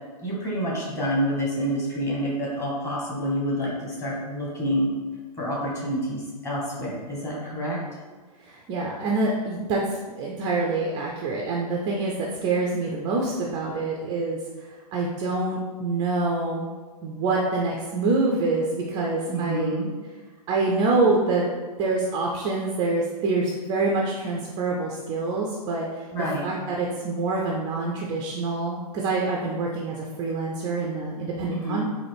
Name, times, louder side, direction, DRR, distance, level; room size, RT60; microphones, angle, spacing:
voice 1, 0.2-4.9 5.4-7.8 19.3-19.9 26.1-26.5 31.5-31.8, equal, 15° left, -5 dB, 1.1 m, -28 dB
voice 2, 8.4-16.7 17.0-19.8 20.5-21.5 21.8-26.1 26.4-31.8, right 3 dB, 20° right, -1 dB, 0.3 m, -26 dB
3.9 x 2.5 x 3.3 m, 1.4 s
hypercardioid pair, 120°, 20 cm